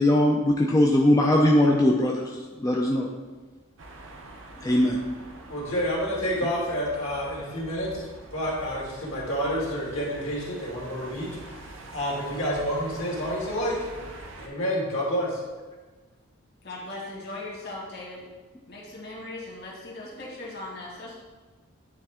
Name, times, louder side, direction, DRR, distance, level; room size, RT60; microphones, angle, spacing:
voice 1, 0.0-3.1 4.6-5.0, left 1 dB, 15° left, -1 dB, 0.4 m, -21 dB
sound 1, 3.8-14.5, right 2 dB, 60° right, 0.7 m, -45 dB
voice 2, 5.5-11.6 11.9-13.7 14.4-15.4, equal, 70° left, -4 dB, 2.0 m, -29 dB
voice 3, 16.6-18.3 18.7-21.1, left 2 dB, 50° left, -4 dB, 1.7 m, -38 dB
9.7 x 3.3 x 3.6 m, 1.3 s
head